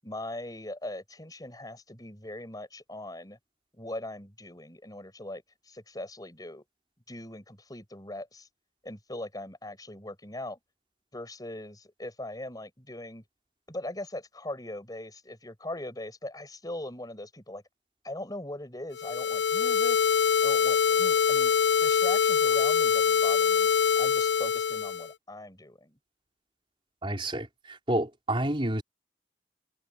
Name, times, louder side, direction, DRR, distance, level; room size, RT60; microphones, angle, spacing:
voice 1, 0.0-3.4 3.7-6.6 7.1-8.5 8.8-10.6 11.1-13.2 13.7-17.6 18.0-20.0 20.4-23.7 24.0-26.0, left 1 dB, 20° left, 7.2 m, -40 dB
sound 1, 18.9-25.1, left 7 dB, 70° left, 0.8 m, -24 dB
voice 2, 27.0-28.8, right 1 dB, 30° right, 4.4 m, -29 dB
head